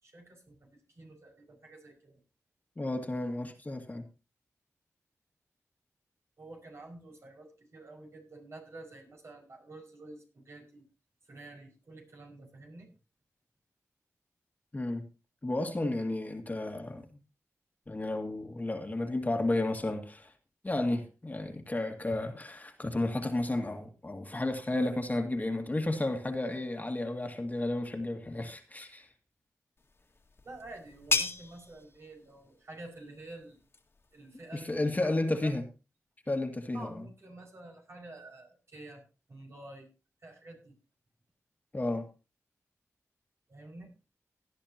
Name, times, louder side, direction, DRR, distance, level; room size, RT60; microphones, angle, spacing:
voice 1, 0.0-2.2 6.4-10.9 11.3-12.9 30.4-33.6 34.1-35.5 36.7-39.9 40.2-40.7 43.5-43.9, right 2 dB, 55° right, 1 dB, 5.6 m, -49 dB
voice 2, 2.8-4.1 14.7-15.0 15.4-17.0 17.9-20.3 20.6-29.1 34.5-35.6 36.3-37.0 41.7-42.1, left 2 dB, 30° left, 5 dB, 2.0 m, -32 dB
sound 1, 29.8-35.2, left 3 dB, 50° left, 1.9 m, -37 dB
17.5 x 10.5 x 2.9 m, 0.31 s
cardioid pair, 65°, 5 cm